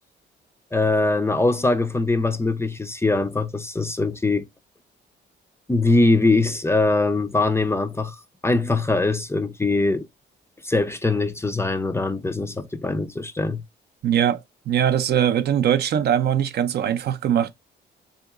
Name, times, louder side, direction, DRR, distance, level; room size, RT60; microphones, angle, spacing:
voice 1, 0.7-4.5 5.7-8.2 8.4-10.1 10.6-13.6, left 2 dB, 15° left, 0.4 m, -22 dB
voice 2, 14.0-14.4 14.7-17.5, right 9 dB, 55° right, 0.4 m, -21 dB
3.7 x 2.8 x 2.3 m
cardioid pair, 90°, 20 cm